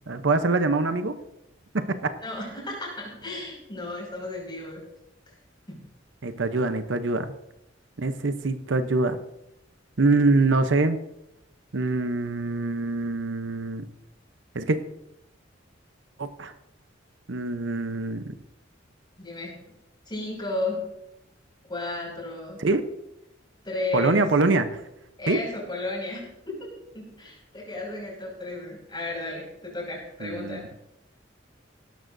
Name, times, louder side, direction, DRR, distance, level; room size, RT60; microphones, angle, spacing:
voice 1, 0.1-1.2 1.7-2.1 6.2-7.3 8.0-9.2 10.0-11.0 11.7-13.9 14.5-14.8 16.2-16.5 17.3-18.3 22.6-22.8 23.9-24.8 25.3-25.4 30.2-30.6, right 3 dB, 70° right, 10 dB, 0.8 m, -24 dB
voice 2, 2.2-4.8 5.3-5.4 5.7-5.9 19.2-19.6 20.1-20.9 21.7-22.6 23.6-24.3 25.2-30.7, left 2 dB, 25° left, -2 dB, 5.6 m, -34 dB
17.5 x 12.5 x 2.6 m, 0.85 s
head